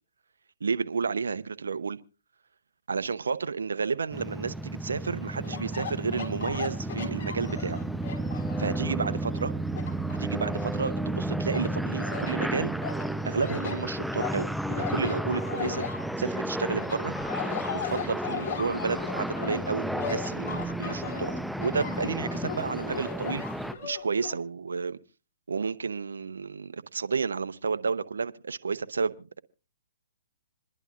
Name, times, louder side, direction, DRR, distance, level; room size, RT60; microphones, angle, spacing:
voice 1, 0.6-2.0 2.9-7.8 8.6-9.5 10.2-12.7 13.2-15.9 16.2-17.1 17.7-23.4 23.8-25.0 25.5-29.4, right 5 dB, 85° right, 0.7 m, -31 dB
sound 1, 4.1-23.7, right 1 dB, ahead, 0.6 m, -32 dB
sound 2, 5.4-8.9 9.3-11.1 11.5-12.4 12.8-16.4 16.8-24.4, left 7 dB, 40° left, 3.8 m, -38 dB
27.0 x 11.0 x 2.4 m
hypercardioid pair, 140°, 0 cm